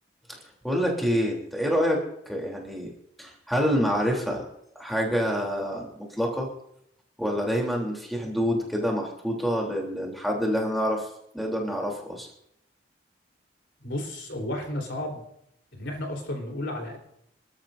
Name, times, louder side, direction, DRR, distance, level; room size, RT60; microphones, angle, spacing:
voice 1, 0.6-2.9 3.2-4.4 4.8-5.9 6.2-6.5 7.2-11.1 11.3-12.3, equal, ahead, -1 dB, 3.3 m, -27 dB
voice 2, 13.8-15.2 15.7-17.0, left 1 dB, 70° left, 3 dB, 3.8 m, -32 dB
27.0 x 13.0 x 2.7 m, 0.74 s
head